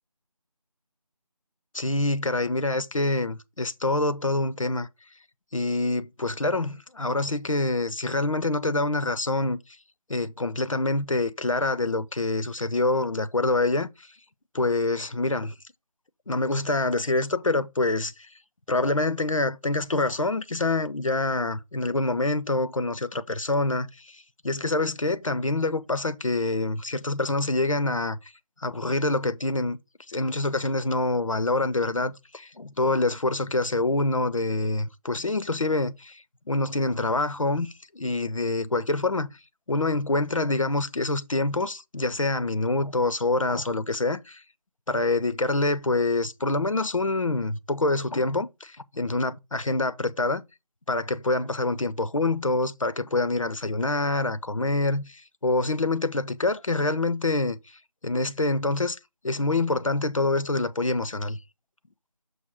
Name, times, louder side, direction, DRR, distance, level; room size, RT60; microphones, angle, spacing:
voice 1, 1.7-4.9 5.5-9.6 10.1-14.1 14.5-15.5 16.3-18.3 18.7-28.2 28.6-29.8 30.1-39.3 39.7-44.4 44.9-50.4 50.9-57.6 58.0-59.0 59.2-61.4, left 2 dB, 55° left, 0.5 m, -26 dB
6.3 x 2.8 x 5.6 m
figure-of-eight pair, 170°, 20 cm